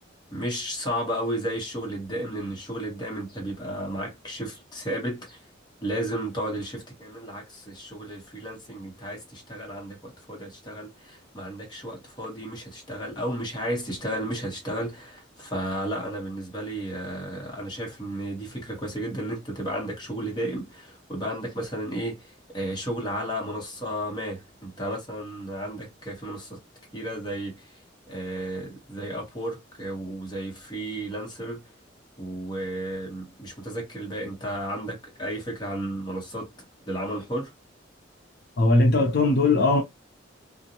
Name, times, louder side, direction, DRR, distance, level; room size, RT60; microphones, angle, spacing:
voice 1, 0.3-5.4 5.8-26.6 26.9-27.7 28.1-31.6 32.2-36.5 36.9-37.5, right 1 dB, 20° left, 0.9 m, -33 dB
voice 2, 38.6-39.8, left 2 dB, 55° left, 0.6 m, -19 dB
2.5 x 2.1 x 2.8 m
head